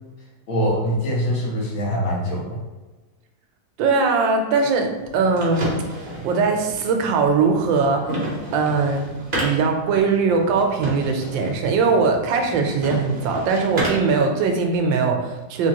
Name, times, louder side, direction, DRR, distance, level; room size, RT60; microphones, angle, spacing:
voice 1, 0.5-2.6, equal, 80° left, -4 dB, 1.9 m, -23 dB
voice 2, 3.8-5.7 6.2-8.2 8.5-9.1 9.4-15.7, right 4 dB, 80° right, 3 dB, 1.3 m, -20 dB
sound 1, 4.9-14.2, right 1 dB, 40° right, 0.8 m, -31 dB
3.6 x 3.2 x 2.8 m, 1.2 s
omnidirectional pair, 2.1 m